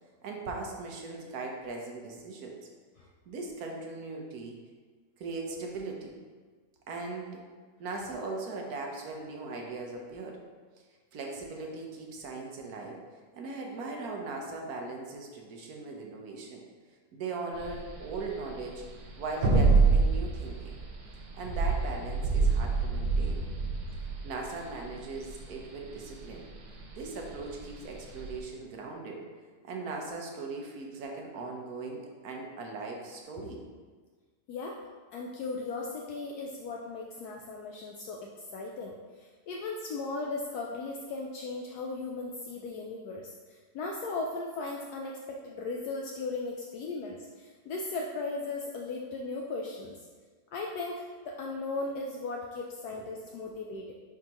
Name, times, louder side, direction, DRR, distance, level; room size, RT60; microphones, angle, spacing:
voice 1, 0.2-2.5 3.3-4.6 5.2-6.2 6.9-7.4 7.8-10.4 11.1-13.0 13.3-16.6 17.1-18.8 19.2-20.8 21.4-23.4 24.2-26.4 27.0-29.2 29.6-33.6, right 3 dB, 65° right, 1 dB, 1.3 m, -39 dB
sound 1, 17.5-28.4, right 4 dB, 90° right, 1.5 m, -27 dB
voice 2, 35.1-50.1 50.5-53.9, left 3 dB, 75° left, -1 dB, 1.1 m, -37 dB
9.6 x 3.7 x 2.9 m, 1.5 s
omnidirectional pair, 1.8 m